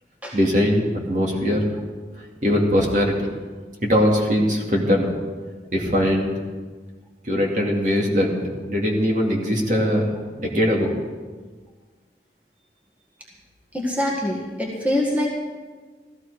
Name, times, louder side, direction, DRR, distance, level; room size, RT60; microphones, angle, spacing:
voice 1, 0.3-1.6 2.4-3.1 3.8-5.1 5.7-6.4 7.2-10.1 10.4-10.9, equal, 45° right, -1 dB, 2.4 m, -21 dB
voice 2, 13.7-15.3, left 1 dB, 10° right, -3 dB, 1.8 m, -24 dB
15.0 x 14.0 x 4.9 m, 1.4 s
head